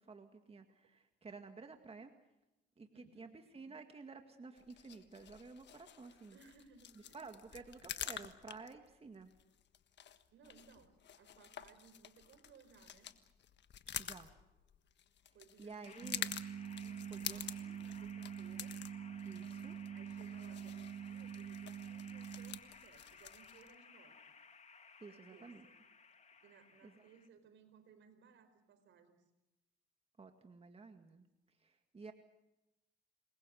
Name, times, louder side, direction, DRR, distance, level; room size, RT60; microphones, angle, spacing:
voice 1, 0.0-2.1 2.8-3.3 3.5-6.4 7.1-9.3 14.0-14.3 15.6-16.3 17.1-17.4 19.2-19.8 25.0-25.7 26.8-27.1 30.2-31.3 31.6-32.1, right 4 dB, 30° right, 6 dB, 2.0 m, -52 dB
voice 2, 2.9-3.4 6.3-7.3 7.5-7.6 10.3-13.1 15.3-16.2 16.7-18.8 19.9-24.2 25.1-25.7 26.4-29.2, right 5 dB, 70° right, 9 dB, 4.8 m, -63 dB
sound 1, 4.6-23.7, left 9 dB, 60° left, 1.5 m, -49 dB
sound 2, 15.8-27.3, left 5 dB, 35° left, 2.0 m, -59 dB
sound 3, 16.0-22.6, right 8 dB, 55° right, 1.9 m, -45 dB
28.0 x 22.0 x 6.4 m, 0.95 s
cardioid pair, 90°, 20 cm